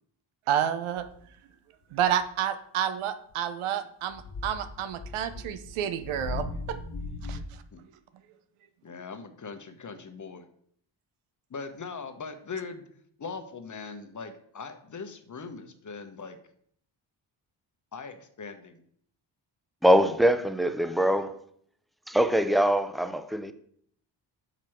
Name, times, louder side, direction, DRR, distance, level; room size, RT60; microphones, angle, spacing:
voice 1, 0.5-1.0 1.9-6.4 7.3-7.4, right 9 dB, 90° right, 0.7 m, -29 dB
sound 1, 1.0-1.2 2.0-2.3 3.3-3.4 4.1-7.4, left 3 dB, 55° left, 1.3 m, -38 dB
voice 2, 8.8-10.4 11.5-12.8 13.2-16.4 17.9-18.8, left 4 dB, 40° left, 1.0 m, -40 dB
voice 3, 19.8-21.4 22.1-23.5, equal, ahead, 0.5 m, -23 dB
6.0 x 5.1 x 4.4 m
supercardioid pair, 60°, 48 cm